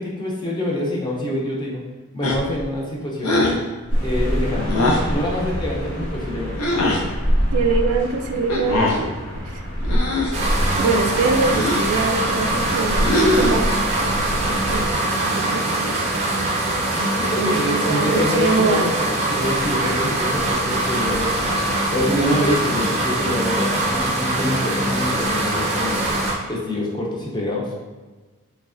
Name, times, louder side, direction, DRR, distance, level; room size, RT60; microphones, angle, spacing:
voice 1, 0.0-1.8 2.1-3.6 4.0-4.7 5.1-6.6 17.2-21.6 21.9-26.0 26.5-27.7, left 1 dB, 20° left, -3 dB, 0.5 m, -26 dB
sound 1, 2.2-2.6 3.2-3.6 4.7-5.1 6.6-7.0 8.5-9.0 9.8-10.4 11.4-11.9 13.0-13.7, left 1 dB, 80° left, 0.5 m, -21 dB
sound 2, 3.9-15.0, equal, 35° left, 1.0 m, -26 dB
voice 2, 7.5-9.1 9.4-9.6 10.8-16.0 17.3-18.9 19.6-20.2, right 4 dB, 85° right, 4 dB, 0.4 m, -24 dB
sound 3, 10.3-26.3, right 1 dB, 30° right, 0.5 m, -22 dB
3.2 x 3.0 x 2.4 m, 1.3 s
head